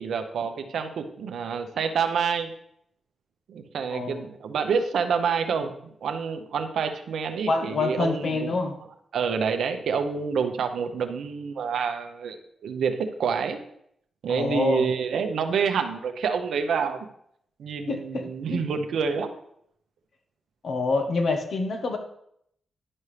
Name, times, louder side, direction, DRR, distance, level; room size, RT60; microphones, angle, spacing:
voice 1, 0.0-2.5 3.5-5.7 6.0-8.5 9.1-12.4 12.6-13.6 14.2-17.0 17.6-19.3, right 6 dB, 80° right, 7 dB, 0.8 m, -27 dB
voice 2, 3.9-4.2 7.5-8.7 14.3-14.9 17.9-18.6 20.6-22.0, left 3 dB, 65° left, 5 dB, 1.2 m, -26 dB
11.0 x 5.4 x 3.3 m, 0.71 s
cardioid pair, 60°, 0 cm